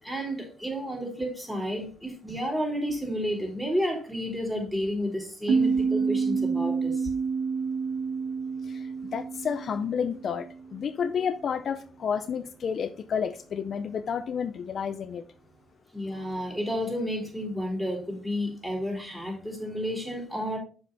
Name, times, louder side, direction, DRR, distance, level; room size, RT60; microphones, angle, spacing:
voice 1, 0.0-7.1 15.9-20.6, equal, 5° right, 3.8 m, -31 dB
sound 1, 5.5-10.8, right 5 dB, 65° right, 1.5 m, -28 dB
voice 2, 8.7-15.2, left 7 dB, 55° left, 0.5 m, -31 dB
6.7 x 5.7 x 4.0 m
cardioid pair, 90°, 0 cm